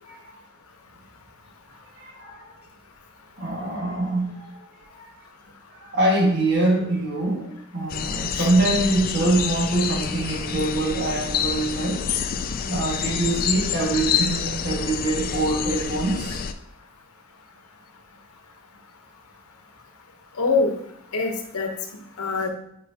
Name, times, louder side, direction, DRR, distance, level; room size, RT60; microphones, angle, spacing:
voice 1, 2.0-2.5 3.4-4.4 4.9-5.1 5.8-12.0 12.7-16.4, right 2 dB, 50° right, -3 dB, 1.9 m, -24 dB
sound 1, 7.9-16.5, left 7 dB, 40° left, 0.3 m, -28 dB
voice 2, 20.4-20.7 21.1-22.5, left 4 dB, 75° left, 3 dB, 1.0 m, -25 dB
8.6 x 4.8 x 2.9 m, 0.76 s
head